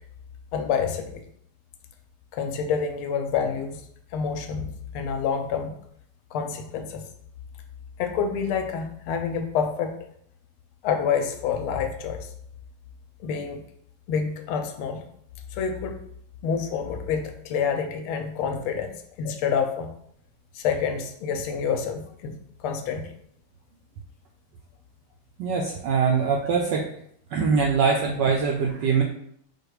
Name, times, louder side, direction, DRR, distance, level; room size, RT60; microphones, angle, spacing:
voice 1, 0.5-1.2 2.3-3.8 4.1-5.7 6.3-7.0 8.0-9.9 10.8-12.3 13.2-13.6 14.1-15.0 15.5-16.0 16.4-19.9 20.5-23.1, left 6 dB, 80° left, 6 dB, 1.4 m, -28 dB
voice 2, 25.4-26.9 27.3-29.0, right 5 dB, 80° right, 0 dB, 1.0 m, -23 dB
4.6 x 2.3 x 4.7 m, 0.69 s
omnidirectional pair, 2.4 m